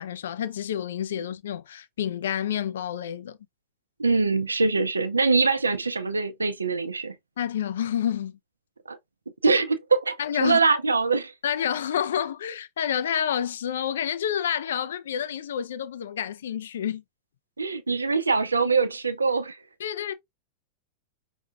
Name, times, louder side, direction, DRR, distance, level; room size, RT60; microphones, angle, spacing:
voice 1, 0.0-3.4 7.4-8.4 10.2-10.6 11.4-17.0 19.8-20.1, left 9 dB, 60° left, 0.4 m, -29 dB
voice 2, 4.0-7.1 8.9-9.0 9.4-10.2 10.4-11.3 17.6-19.6, right 4 dB, 80° right, 0.6 m, -23 dB
5.5 x 3.5 x 2.4 m
figure-of-eight pair, 90°, 0 cm